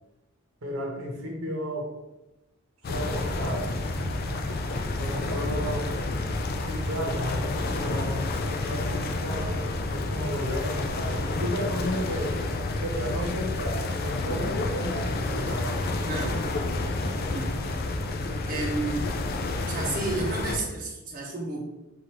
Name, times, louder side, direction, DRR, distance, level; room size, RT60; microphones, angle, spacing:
voice 1, 0.6-1.9 2.9-3.8 4.7-5.9 6.6-9.7 9.9-12.4 12.8-15.9, equal, 80° right, 0 dB, 1.0 m, -33 dB
sound 1, 2.8-20.6, left 2 dB, 45° left, 0.4 m, -29 dB
voice 2, 16.0-16.4 17.3-17.5 18.5-19.1 19.7-21.6, right 2 dB, 40° right, -3 dB, 0.7 m, -31 dB
5.8 x 2.5 x 3.0 m, 0.97 s
head